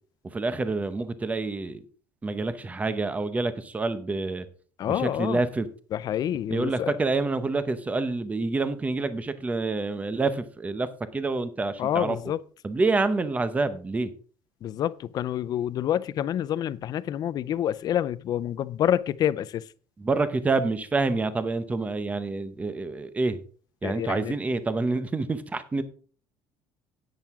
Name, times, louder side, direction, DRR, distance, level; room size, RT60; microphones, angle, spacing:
voice 1, 0.2-1.8 2.2-4.4 4.8-5.7 6.5-12.2 12.6-14.1 20.0-23.4 23.8-25.8, right 3 dB, 15° right, 0.8 m, -27 dB
voice 2, 4.8-5.4 5.9-7.0 11.8-12.4 14.6-19.6 23.8-24.3, left 10 dB, 40° left, 0.4 m, -27 dB
10.5 x 9.1 x 3.6 m
cardioid pair, 160°, 11 cm